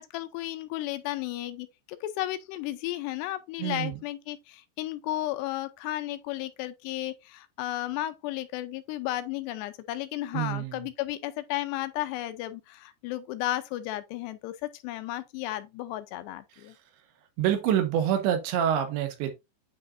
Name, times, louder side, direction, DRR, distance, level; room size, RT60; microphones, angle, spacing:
voice 1, 0.0-16.7, left 15 dB, 80° left, 2.6 m, -34 dB
voice 2, 3.6-4.0 10.3-10.9 16.5-16.7 17.4-19.3, right 10 dB, 85° right, 3.6 m, -27 dB
9.3 x 5.0 x 2.5 m
omnidirectional pair, 5.1 m